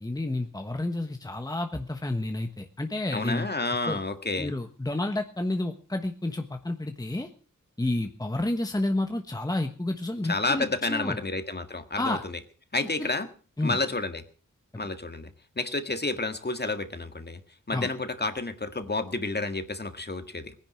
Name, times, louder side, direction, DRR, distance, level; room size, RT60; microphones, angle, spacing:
voice 1, 0.0-3.5 3.8-4.0 4.4-7.3 7.8-11.2 12.0-12.2 13.0-13.1 13.6-13.8 17.7-17.9, left 2 dB, 10° left, 6 dB, 1.2 m, -30 dB
voice 2, 3.1-4.5 10.3-12.4 12.7-13.3 13.6-14.2 14.8-17.4 17.7-20.5, left 3 dB, 30° left, 8 dB, 1.8 m, -30 dB
19.5 x 10.5 x 6.3 m, 0.40 s
wide cardioid pair, 110°, 31 cm